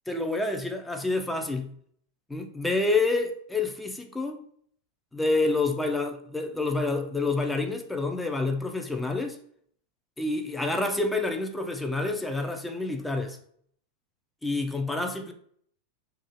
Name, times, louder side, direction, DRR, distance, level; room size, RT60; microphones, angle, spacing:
voice 1, 0.1-1.7 2.3-4.4 5.1-9.4 10.2-13.4 14.4-15.3, left 3 dB, 5° left, 0.3 m, -28 dB
2.4 x 2.4 x 2.8 m
figure-of-eight pair, 90°, 0 cm